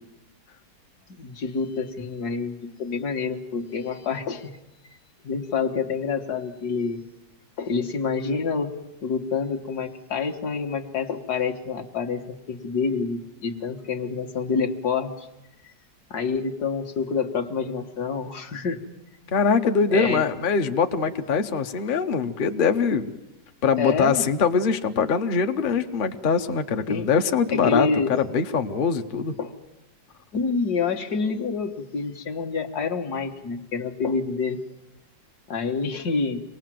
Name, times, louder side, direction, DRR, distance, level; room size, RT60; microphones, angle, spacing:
voice 1, 1.1-4.5 5.2-7.0 7.6-8.7 9.0-15.3 16.1-18.8 19.6-20.3 23.8-24.2 26.9-27.1 27.5-28.1 29.4-29.5 30.3-34.6 35.5-36.4, left 5 dB, 60° left, 5 dB, 1.9 m, -27 dB
voice 2, 19.3-23.1 23.6-29.3, left 5 dB, 40° left, 7 dB, 0.8 m, -23 dB
25.5 x 19.5 x 7.6 m, 0.94 s
omnidirectional pair, 1.9 m